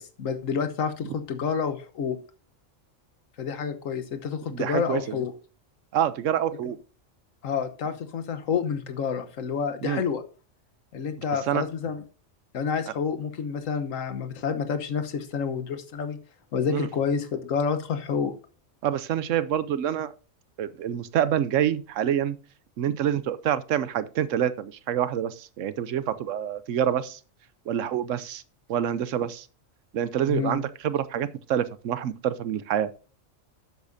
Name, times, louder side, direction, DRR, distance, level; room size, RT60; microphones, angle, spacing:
voice 1, 0.0-2.2 3.4-5.3 7.4-10.2 10.9-12.0 12.5-16.2 16.5-18.3 30.3-30.6, left 6 dB, 85° left, 1.4 m, -29 dB
voice 2, 4.5-5.2 5.9-6.8 9.8-10.0 11.5-11.6 16.7-16.9 18.8-20.1 20.6-22.4 22.8-27.2 27.7-28.4 28.7-29.5 29.9-32.9, right 10 dB, 75° right, 1.0 m, -27 dB
11.0 x 8.4 x 2.6 m
omnidirectional pair, 1.3 m